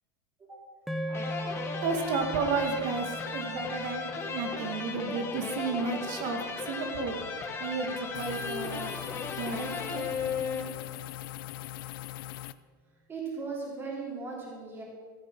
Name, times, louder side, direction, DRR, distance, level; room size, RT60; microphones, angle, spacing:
sound 1, 0.9-9.2, equal, ahead, 0.7 m, -41 dB
sound 2, 1.1-11.1, left 5 dB, 20° left, 1.4 m, -36 dB
voice 1, 1.8-7.2 7.6-8.9 9.4-10.1, right 4 dB, 60° right, 5 dB, 2.0 m, -32 dB
sound 3, 8.1-12.5, left 14 dB, 75° left, 0.5 m, -41 dB
voice 2, 13.1-14.8, right 4 dB, 20° right, -3 dB, 3.2 m, -37 dB
14.0 x 7.0 x 6.1 m, 1.5 s
supercardioid pair, 145°, 12 cm